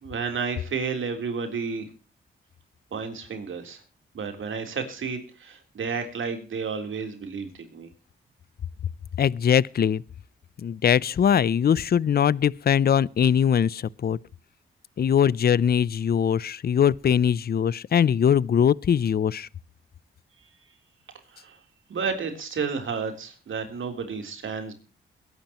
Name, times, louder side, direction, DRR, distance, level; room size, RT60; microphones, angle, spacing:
voice 1, 0.0-1.9 2.9-3.8 4.1-7.9 21.3-21.6 21.9-24.7, right 5 dB, 75° right, 3.5 m, -31 dB
voice 2, 9.2-10.0 10.6-14.2 15.0-19.5, left 8 dB, 50° left, 0.5 m, -21 dB
22.0 x 11.0 x 3.0 m
cardioid pair, 65°, 21 cm